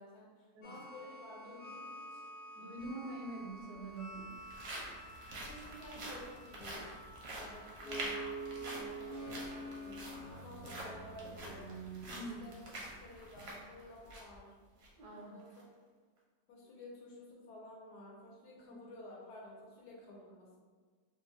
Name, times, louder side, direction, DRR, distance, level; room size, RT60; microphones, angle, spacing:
voice 1, 0.0-2.2 5.3-7.0 7.2-11.9 12.4-12.6 13.0-14.5 15.1-15.6 16.5-20.6, left 1 dB, 80° left, -2 dB, 1.2 m, -53 dB
sound 1, 0.6-12.0, right 2 dB, 55° left, 0.9 m, -48 dB
voice 2, 2.6-4.3 12.1-12.5 15.0-15.4 18.6-18.7, right 2 dB, 80° right, -1 dB, 1.2 m, -45 dB
sound 2, 2.8-2.9 3.8-14.4 14.8-14.9 15.4-15.6, right 1 dB, 60° right, 0.7 m, -47 dB
3.1 x 2.3 x 2.6 m, 1.5 s
omnidirectional pair, 1.7 m